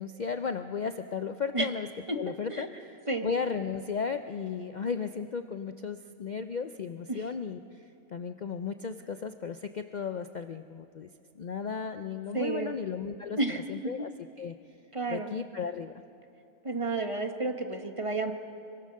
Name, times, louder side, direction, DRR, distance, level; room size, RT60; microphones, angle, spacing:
voice 1, 0.0-11.1 11.4-14.1 14.4-14.6 15.1-15.9, left 6 dB, 70° left, 8 dB, 0.4 m, -35 dB
voice 2, 12.3-12.7 13.4-13.6 14.9-15.3 16.6-18.3, right 3 dB, 25° right, 5 dB, 1.2 m, -31 dB
26.0 x 23.0 x 6.5 m, 2.6 s
omnidirectional pair, 1.6 m